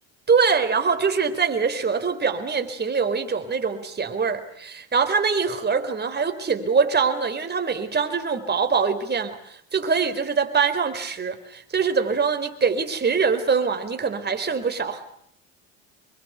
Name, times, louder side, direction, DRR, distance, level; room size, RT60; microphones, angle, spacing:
voice 1, 0.3-15.0, right 5 dB, 25° right, 7 dB, 4.2 m, -23 dB
26.0 x 22.5 x 8.3 m, 0.70 s
supercardioid pair, 85°, 39 cm